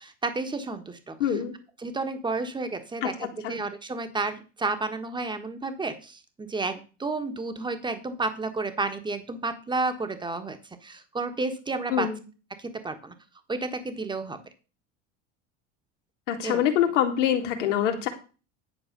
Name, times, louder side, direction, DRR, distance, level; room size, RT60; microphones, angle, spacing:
voice 1, 0.0-1.2 1.8-12.1 12.6-13.1 13.5-14.4 16.4-16.6, right 3 dB, 15° right, 8 dB, 1.4 m, -31 dB
voice 2, 1.2-1.5 3.0-3.6 11.9-12.2 16.3-18.1, left 10 dB, 85° left, 4 dB, 2.2 m, -25 dB
10.5 x 4.7 x 6.7 m, 0.34 s
supercardioid pair, 105°, 36 cm